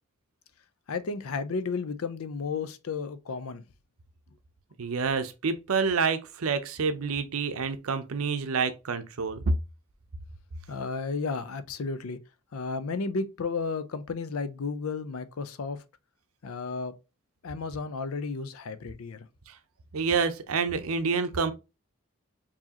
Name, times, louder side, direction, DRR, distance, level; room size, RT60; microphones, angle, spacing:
voice 1, 0.9-3.6 10.7-12.2 12.5-15.8 16.4-16.9 17.4-19.3, left 4 dB, 85° left, 0.5 m, -33 dB
voice 2, 4.8-9.5 19.5-19.6 19.9-21.5, right 5 dB, 85° right, 0.6 m, -28 dB
4.6 x 2.8 x 2.8 m
head